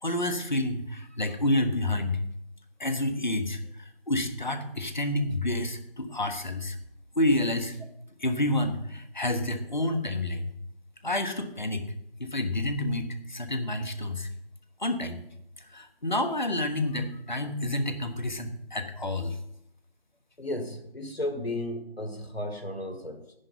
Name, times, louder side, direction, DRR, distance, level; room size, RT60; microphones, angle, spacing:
voice 1, 0.0-2.2 2.8-6.8 7.2-7.8 8.2-10.5 11.0-11.8 12.2-14.3 14.8-15.2 15.6-19.4, left 1 dB, 50° left, 8 dB, 1.3 m, -29 dB
voice 2, 20.4-23.3, left 1 dB, 85° left, 7 dB, 2.1 m, -34 dB
11.0 x 8.8 x 5.4 m, 0.79 s
figure-of-eight pair, 170°, 30 cm